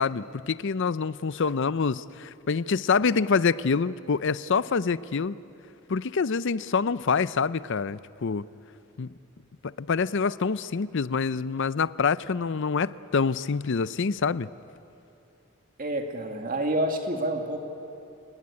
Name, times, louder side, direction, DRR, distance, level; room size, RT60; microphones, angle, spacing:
voice 1, 0.0-5.3 5.9-8.5 9.0-9.1 9.6-14.5, left 5 dB, 60° left, 17 dB, 0.5 m, -26 dB
voice 2, 15.8-17.6, right 1 dB, 40° right, 3 dB, 2.1 m, -28 dB
29.5 x 18.0 x 9.8 m, 2.8 s
head